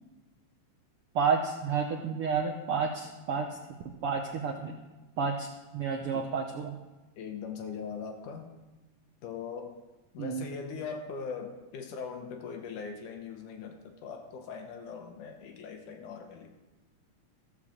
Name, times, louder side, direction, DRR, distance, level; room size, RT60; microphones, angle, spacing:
voice 1, 1.1-3.5 4.0-4.7 5.2-5.5 5.7-6.8 10.2-10.4, right 5 dB, 75° right, 2 dB, 1.3 m, -30 dB
voice 2, 7.2-8.5 9.2-9.8 10.1-16.5, left 6 dB, 75° left, 4 dB, 2.7 m, -40 dB
15.0 x 6.7 x 7.3 m, 1.1 s
omnidirectional pair, 3.7 m